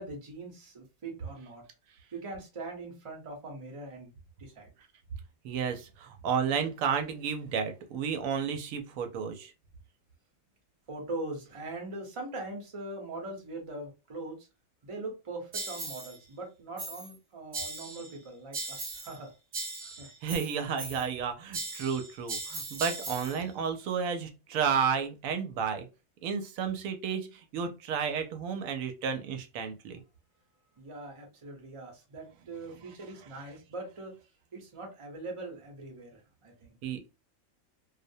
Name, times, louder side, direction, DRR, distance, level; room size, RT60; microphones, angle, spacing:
voice 1, 0.0-1.6 2.1-4.7 10.9-14.5 14.8-20.1 30.8-34.2 34.5-36.8, right 2 dB, 30° right, 0.6 m, -42 dB
voice 2, 5.4-9.5 20.2-25.9 26.2-30.0 36.8-37.0, right 6 dB, 85° right, 1.0 m, -32 dB
sound 1, 15.5-16.2 16.8-17.2 17.5-18.2 18.5-19.2 19.5-21.2 21.5-23.4, right 3 dB, 65° right, 1.2 m, -39 dB
2.4 x 2.1 x 2.6 m
omnidirectional pair, 1.4 m